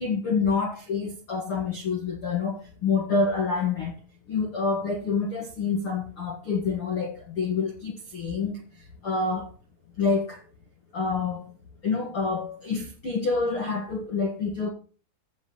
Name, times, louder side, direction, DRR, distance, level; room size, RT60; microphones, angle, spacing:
voice 1, 0.0-4.0 4.3-9.5 10.0-10.4 10.9-11.5 11.8-14.7, left 4 dB, 75° left, 1.2 m, -27 dB
8.8 x 7.8 x 7.3 m
omnidirectional pair, 5.7 m